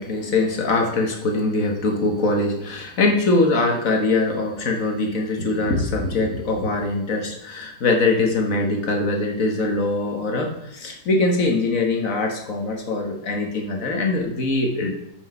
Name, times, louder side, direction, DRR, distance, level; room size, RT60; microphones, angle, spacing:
voice 1, 0.0-15.0, left 2 dB, 50° left, 2 dB, 1.8 m, -22 dB
9.8 x 5.5 x 5.5 m, 0.77 s
omnidirectional pair, 1.9 m